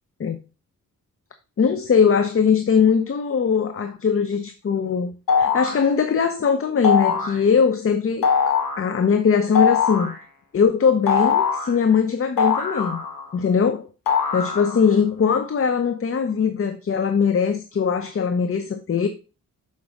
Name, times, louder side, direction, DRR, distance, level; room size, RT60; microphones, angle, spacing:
voice 1, 1.6-5.1 5.4-8.3 8.8-10.1 10.5-13.0 13.3-13.9 14.3-19.1, left 6 dB, 40° left, 0.8 m, -20 dB
sound 1, 5.3-5.8 6.8-7.4 8.2-8.8 9.5-10.2 11.1-11.7 12.4-13.3 14.1-14.9, left 6 dB, 80° left, 1.4 m, -21 dB
7.1 x 5.1 x 3.7 m
cardioid pair, 75°, 33 cm